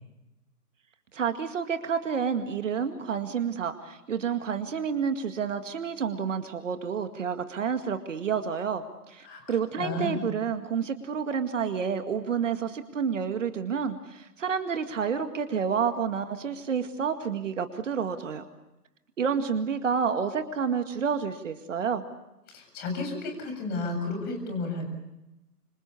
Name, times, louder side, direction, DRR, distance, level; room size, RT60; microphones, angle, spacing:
voice 1, 1.1-18.4 19.2-22.0, right 6 dB, 50° right, 8 dB, 2.1 m, -29 dB
voice 2, 9.2-10.2 22.5-24.9, left 3 dB, 20° left, 5 dB, 7.4 m, -33 dB
27.5 x 26.0 x 6.9 m, 0.97 s
figure-of-eight pair, 135°, 46 cm